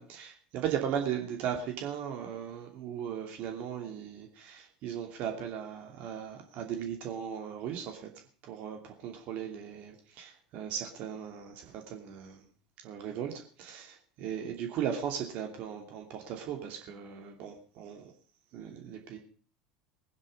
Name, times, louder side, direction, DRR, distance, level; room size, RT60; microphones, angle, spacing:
voice 1, 0.0-8.1 8.4-12.4 12.8-18.1 18.5-19.2, right 9 dB, 50° right, 3 dB, 2.7 m, -37 dB
20.5 x 9.7 x 5.3 m, 0.40 s
figure-of-eight pair, 75°, 3 cm